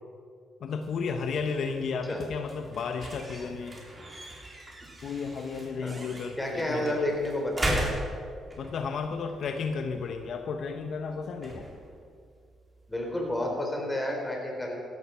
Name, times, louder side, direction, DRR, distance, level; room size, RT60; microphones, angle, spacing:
voice 1, 0.6-3.8 5.0-7.1 8.6-11.7, left 5 dB, 65° left, 6 dB, 1.0 m, -33 dB
sound 1, 0.7-13.5, right 1 dB, 25° right, 3.3 m, -39 dB
voice 2, 6.4-7.9 12.9-14.8, left 1 dB, 15° left, 0 dB, 4.0 m, -30 dB
15.5 x 12.0 x 5.7 m, 2.2 s
cardioid pair, 90°, 0 cm